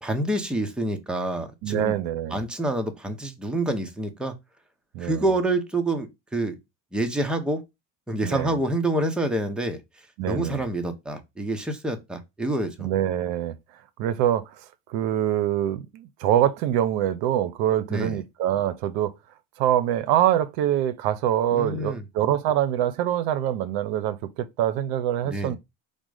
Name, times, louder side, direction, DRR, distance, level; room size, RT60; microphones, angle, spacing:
voice 1, 0.0-2.0 2.3-4.3 5.0-6.6 6.9-7.6 8.1-9.8 10.3-12.9 17.9-18.2 21.5-22.0 25.2-25.6, right 1 dB, ahead, 0.7 m, -27 dB
voice 2, 1.6-2.4 4.9-5.2 8.2-8.5 10.2-10.6 12.8-13.6 14.0-14.4 14.9-19.1 19.6-25.6, right 11 dB, 75° right, 0.7 m, -24 dB
5.0 x 2.2 x 4.8 m
cardioid pair, 125°, 36 cm